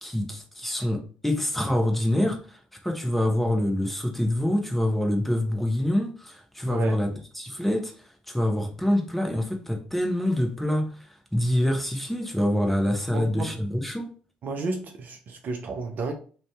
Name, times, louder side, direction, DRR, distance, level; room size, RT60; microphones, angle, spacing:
voice 1, 0.0-7.1 7.3-7.9 8.3-14.1, left 1 dB, 5° left, 0.7 m, -26 dB
voice 2, 6.7-7.0 13.1-13.6 14.4-16.1, right 3 dB, 45° right, 0.4 m, -32 dB
2.6 x 2.2 x 3.3 m
figure-of-eight pair, 50°, 4 cm